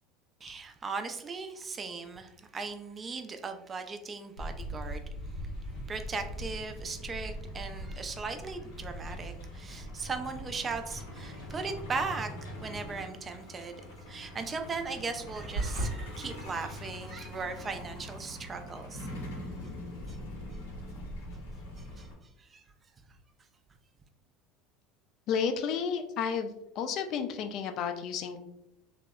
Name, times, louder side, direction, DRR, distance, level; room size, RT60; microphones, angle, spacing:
voice 1, 0.4-5.0 5.9-13.8 14.1-19.3 20.1-20.2 21.8-22.1 22.4-22.6, right 4 dB, 30° right, 7 dB, 0.3 m, -38 dB
Truck, 4.4-22.1, equal, 90° left, 0.7 m, -42 dB
sound 1, 15.5-15.9, right 1 dB, 85° right, 0.6 m, -30 dB
voice 2, 25.3-26.5 26.8-28.4, left 6 dB, 55° left, 7 dB, 0.3 m, -31 dB
2.6 x 2.0 x 2.3 m, 0.82 s
supercardioid pair, 95°, 0 cm